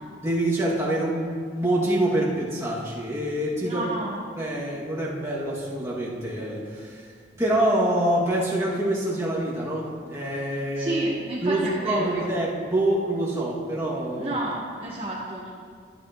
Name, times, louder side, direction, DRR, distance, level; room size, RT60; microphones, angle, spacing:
voice 1, 0.2-3.8 4.3-7.1 7.4-11.0 11.4-14.4, right 1 dB, 15° right, -7 dB, 2.2 m, -26 dB
voice 2, 3.6-4.2 10.7-12.2 14.2-15.5, right 1 dB, 35° right, -6 dB, 1.1 m, -30 dB
13.5 x 9.9 x 3.0 m, 2.1 s
head